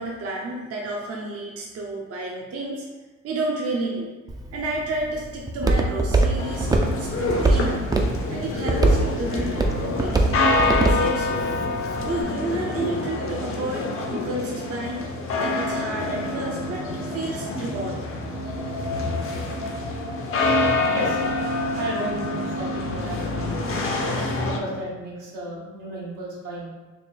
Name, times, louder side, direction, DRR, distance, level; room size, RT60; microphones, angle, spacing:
voice 1, 0.0-2.9 3.2-4.1 4.5-6.7 7.0-7.9 8.3-10.2 10.7-11.5 12.0-15.1 15.4-18.1, right 2 dB, 50° right, -2 dB, 0.6 m, -31 dB
Walk footsteps, 4.3-12.2, right 2 dB, 15° right, 0.3 m, -24 dB
sound 1, 6.4-24.6, left 2 dB, 45° left, 0.6 m, -27 dB
Wind, 16.6-22.6, left 3 dB, 75° left, 1.0 m, -36 dB
voice 2, 21.8-23.6 24.4-26.7, right 1 dB, 85° right, -5 dB, 1.2 m, -33 dB
3.4 x 2.1 x 4.3 m, 1.3 s
cardioid pair, 90°, 30 cm